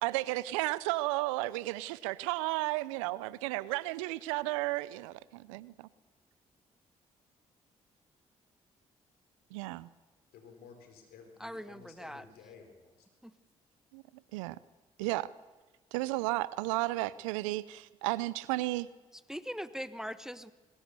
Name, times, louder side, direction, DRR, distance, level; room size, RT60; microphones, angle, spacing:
voice 1, 0.0-5.9 9.5-9.9 13.9-14.0 14.3-14.6 15.0-15.3 15.9-18.9, right 19 dB, 85° right, 20 dB, 0.6 m, -33 dB
voice 2, 10.3-13.1, left 5 dB, 75° left, 5 dB, 4.5 m, -54 dB
voice 3, 11.4-12.3 13.2-13.3 19.1-20.5, equal, 5° right, 14 dB, 1.3 m, -41 dB
22.5 x 20.5 x 6.9 m, 1.2 s
hypercardioid pair, 45°, 16 cm